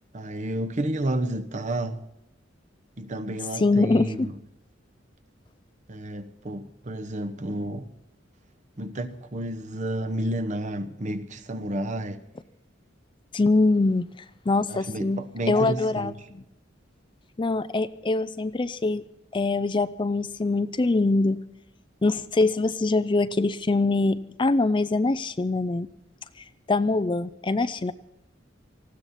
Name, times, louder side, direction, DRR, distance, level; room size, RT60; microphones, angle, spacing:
voice 1, 0.1-2.0 3.0-4.3 5.9-7.9 8.8-12.2 14.7-16.2, right 1 dB, 40° right, 0.9 m, -31 dB
voice 2, 3.6-4.3 13.3-14.0 14.5-16.4 17.4-19.0 19.3-21.4 22.0-25.9 26.7-27.9, left 3 dB, 25° left, 0.4 m, -23 dB
19.5 x 15.5 x 4.2 m
head